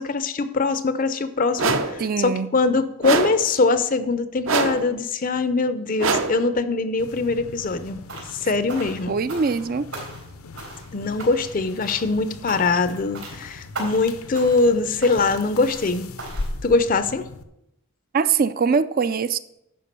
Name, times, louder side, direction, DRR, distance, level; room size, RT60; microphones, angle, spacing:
voice 1, 0.0-8.0 8.3-9.1 10.9-16.1 16.6-17.3, left 3 dB, 40° left, 0.5 m, -22 dB
sound 1, 1.6-2.0 3.0-3.5 4.5-4.9 6.0-6.5, right 3 dB, 65° right, 0.8 m, -23 dB
voice 2, 2.0-2.5 9.1-9.9 18.1-19.4, right 5 dB, 40° right, 0.4 m, -22 dB
sound 2, 7.0-17.4, left 2 dB, 80° left, 0.8 m, -39 dB
sound 3, 8.1-8.4 8.7-9.6 9.9-10.3 10.6-10.9 11.2-11.6 11.8-12.1 12.5-12.9 13.1-13.4 13.7-14.1 14.3-14.7 15.0-15.3 15.6-15.9 16.2-16.5, right 2 dB, 80° right, 4.0 m, -37 dB
11.0 x 4.7 x 6.8 m
head